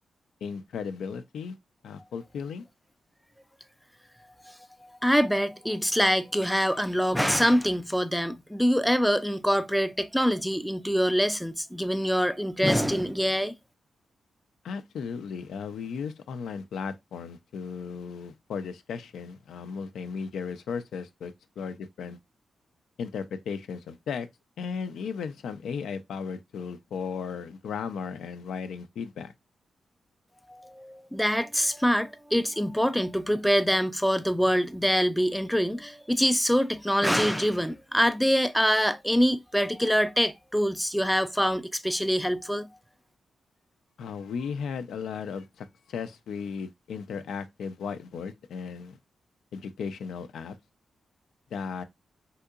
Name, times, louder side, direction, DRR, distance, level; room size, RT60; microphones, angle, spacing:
voice 1, 0.4-1.6 1.8-2.6 14.6-22.2 23.0-24.3 24.6-29.3 44.0-49.0 49.5-50.6 51.5-51.8, left 6 dB, 90° left, 0.3 m, -35 dB
voice 2, 5.0-13.5 30.5-42.7, equal, ahead, 0.3 m, -25 dB
3.5 x 2.7 x 2.3 m
cardioid pair, 85°, 0 cm